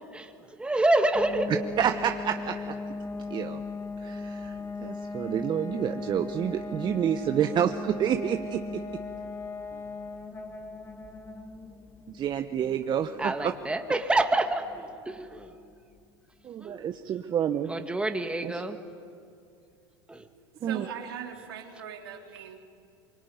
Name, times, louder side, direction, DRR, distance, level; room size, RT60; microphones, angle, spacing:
voice 1, 0.6-1.6 13.2-15.6 16.6-17.2 17.7-18.8 20.1-20.3 20.7-20.9, right 2 dB, 10° right, 5 dB, 2.1 m, -28 dB
sound 1, 1.1-15.7, left 3 dB, 20° left, 2.2 m, -38 dB
voice 2, 1.8-2.7 3.3-3.6 4.0-8.8 12.1-13.3 16.4-17.7 20.6-20.9, right 9 dB, 35° right, 7 dB, 1.2 m, -29 dB
voice 3, 20.6-22.6, right 8 dB, 80° right, 2 dB, 3.3 m, -40 dB
25.0 x 23.5 x 9.6 m, 2.4 s
hypercardioid pair, 90°, 12 cm